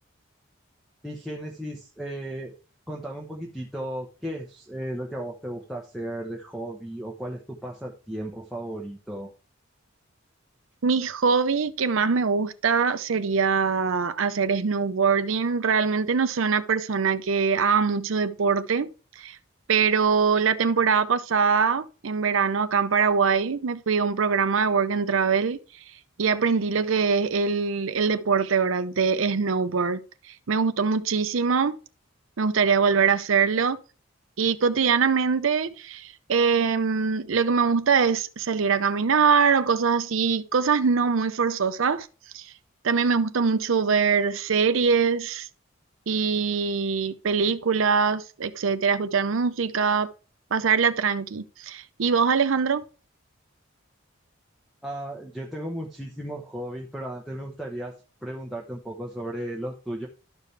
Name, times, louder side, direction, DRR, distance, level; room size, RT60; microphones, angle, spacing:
voice 1, 1.0-2.5 2.9-9.3 54.8-57.9 58.2-60.1, right 1 dB, ahead, 1.0 m, -35 dB
voice 2, 10.8-19.4 19.7-25.6 26.2-30.0 30.5-31.8 32.4-33.8 34.4-42.1 42.3-42.5 42.8-45.5 46.1-50.1 50.5-52.8, right 5 dB, 75° right, 0.6 m, -23 dB
12.5 x 5.0 x 3.3 m
head